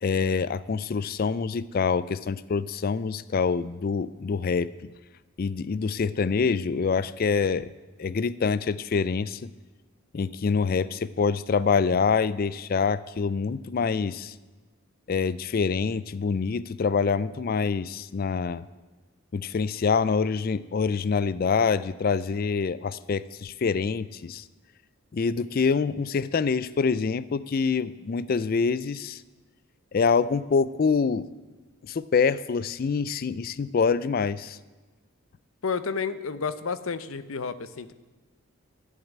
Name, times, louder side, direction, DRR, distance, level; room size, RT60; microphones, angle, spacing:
voice 1, 0.0-4.9 5.4-7.7 8.0-9.5 10.1-14.3 15.1-18.6 19.3-24.4 25.1-29.2 29.9-31.3 31.8-34.6, left 5 dB, 45° left, 17 dB, 0.4 m, -26 dB
voice 2, 35.6-37.9, left 5 dB, 75° left, 14 dB, 0.7 m, -31 dB
11.5 x 7.3 x 9.6 m, 1.3 s
head